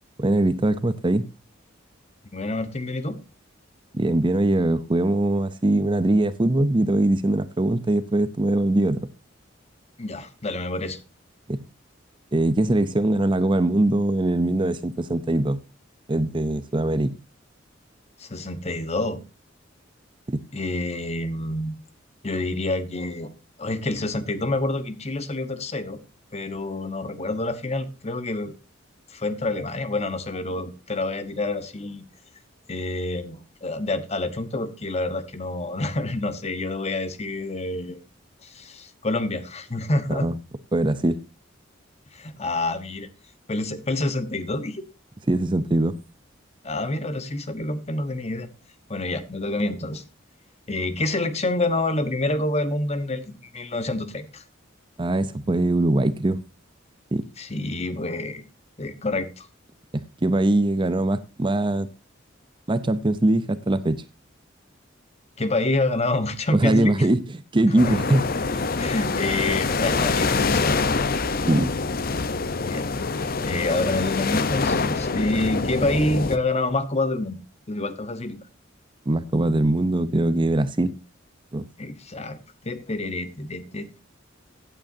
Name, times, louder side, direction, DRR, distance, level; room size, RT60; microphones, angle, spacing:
voice 1, 0.2-1.3 3.9-9.1 11.5-11.6 12.3-15.6 16.1-17.2 20.3-20.4 40.1-40.3 40.7-41.2 45.3-46.0 55.0-56.4 57.1-57.2 59.9-61.9 62.7-64.0 66.5-67.2 67.5-68.2 68.5-68.6 71.5-71.7 79.1-80.9 81.5-81.7, right 1 dB, 25° right, 0.6 m, -22 dB
voice 2, 2.3-3.2 10.0-11.0 18.2-19.2 20.5-21.8 22.2-23.3 23.6-26.0 26.3-28.5 29.1-32.0 32.7-38.0 38.4-40.3 42.1-43.1 43.5-44.8 46.6-48.5 48.9-50.0 50.7-54.4 57.4-58.4 58.8-59.5 65.4-67.1 67.7-68.0 68.8-70.8 72.7-72.9 73.1-77.4 77.7-78.4 81.8-82.4 82.6-84.0, left 2 dB, 35° left, 1.2 m, -27 dB
sound 1, 67.8-76.4, left 4 dB, 50° left, 0.8 m, -25 dB
16.0 x 9.0 x 2.7 m
head